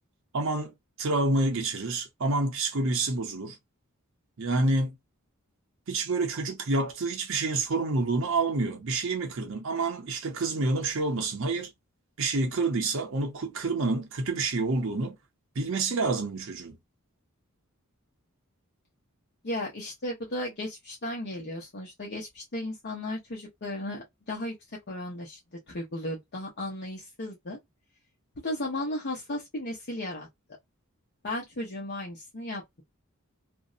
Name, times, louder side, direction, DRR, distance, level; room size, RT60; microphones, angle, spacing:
voice 1, 0.3-0.7 1.0-3.6 4.4-4.9 5.9-11.7 12.2-15.2 15.6-16.8, right 3 dB, 60° right, 0.6 m, -28 dB
voice 2, 19.4-24.6 24.9-27.6 28.4-30.3 31.2-32.8, left 1 dB, 50° left, 0.8 m, -35 dB
2.6 x 2.0 x 2.4 m
head